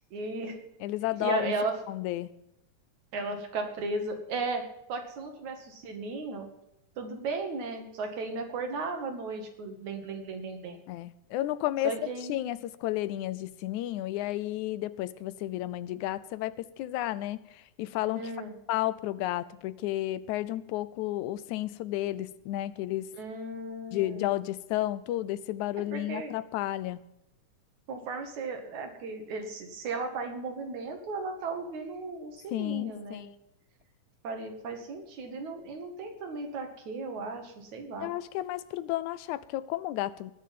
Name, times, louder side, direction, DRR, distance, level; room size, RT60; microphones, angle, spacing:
voice 1, 0.1-0.6 1.2-1.7 3.1-4.6 4.9-6.5 7.0-10.8 11.8-12.3 18.2-18.5 23.1-24.3 25.9-26.3 27.9-33.2 34.2-38.1, right 3 dB, 75° right, 5 dB, 3.5 m, -35 dB
voice 2, 0.8-1.5 1.9-2.3 10.9-18.3 18.7-23.1 23.9-27.0 32.5-33.3 38.0-40.3, left 15 dB, 85° left, 17 dB, 2.1 m, -32 dB
19.5 x 6.6 x 7.5 m, 0.83 s
omnidirectional pair, 3.4 m